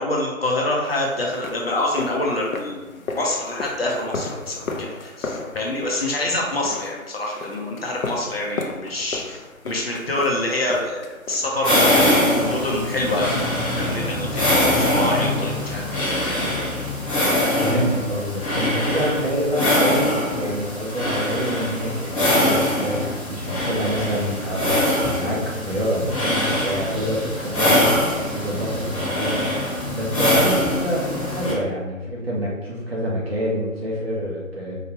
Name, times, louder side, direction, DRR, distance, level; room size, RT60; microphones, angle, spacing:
voice 1, 0.0-16.5, left 1 dB, 45° left, -2 dB, 0.7 m, -26 dB
sound 1, 0.9-12.0, left 3 dB, 80° left, 0.7 m, -35 dB
sound 2, 11.6-31.5, left 1 dB, 25° left, 1.1 m, -23 dB
voice 2, 17.6-29.5 29.9-34.8, equal, 45° right, -5 dB, 1.3 m, -26 dB
4.6 x 2.4 x 3.0 m, 1.1 s
figure-of-eight pair, 150°, 41 cm